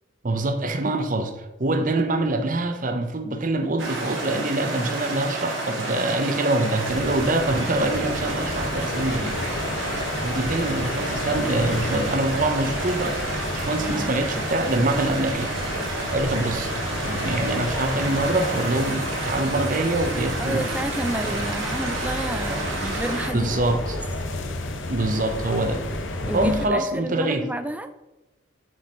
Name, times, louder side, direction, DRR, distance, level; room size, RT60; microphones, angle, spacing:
voice 1, 0.2-9.4 10.2-13.2 13.5-15.5 16.1-16.7 17.0-20.6 21.2-21.5 23.3-24.0 24.9-25.8 26.3-27.5, right 2 dB, 40° right, 0.8 m, -25 dB
sound 1, 3.8-23.3, right 2 dB, 70° right, 2.4 m, -30 dB
sound 2, 6.8-26.7, left 1 dB, 70° left, 1.0 m, -32 dB
voice 2, 13.8-14.1 20.4-23.6 26.3-27.9, right 1 dB, 5° right, 0.4 m, -30 dB
sound 3, 18.9-23.5, left 1 dB, 35° left, 1.4 m, -50 dB
7.4 x 4.7 x 5.5 m
head